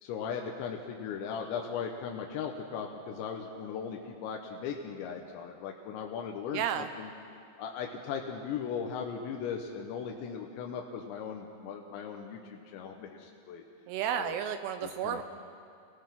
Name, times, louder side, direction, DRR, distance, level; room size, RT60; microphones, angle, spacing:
voice 1, 0.0-7.1 7.6-13.6 14.2-14.4 14.8-15.2, left 7 dB, 80° left, 1 dB, 3.4 m, -38 dB
voice 2, 6.5-6.9 13.9-15.2, right 9 dB, 80° right, 9 dB, 2.6 m, -32 dB
27.5 x 19.0 x 6.0 m, 2.4 s
omnidirectional pair, 5.1 m